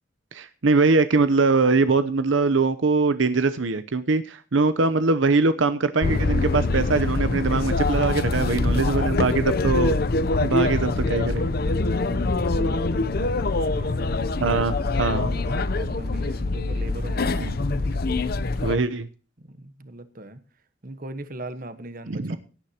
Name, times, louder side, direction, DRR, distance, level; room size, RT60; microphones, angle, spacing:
voice 1, 0.3-10.0 10.4-11.5 14.4-15.3 17.4-17.6 18.6-19.1 22.1-22.4, right 3 dB, 80° right, 11 dB, 0.8 m, -22 dB
sound 1, 6.0-18.8, left 3 dB, 50° left, 0.7 m, -24 dB
voice 2, 8.3-9.8 10.7-14.1 15.0-17.9 19.4-20.4 20.8-22.4, right 1 dB, 45° right, 11 dB, 1.3 m, -40 dB
17.5 x 10.0 x 2.9 m, 0.37 s
head